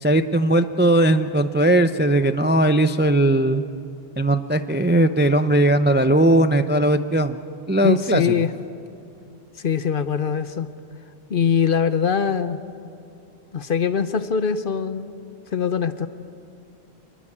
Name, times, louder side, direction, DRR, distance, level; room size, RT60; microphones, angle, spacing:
voice 1, 0.0-3.6 4.2-7.4 7.7-8.4, right 1 dB, 15° right, 9 dB, 0.4 m, -18 dB
voice 2, 7.8-8.5 9.6-10.7 11.3-12.6 13.5-15.1 15.5-16.1, left 7 dB, 55° left, 12 dB, 0.9 m, -22 dB
26.0 x 21.5 x 8.6 m, 2.5 s
omnidirectional pair, 1.2 m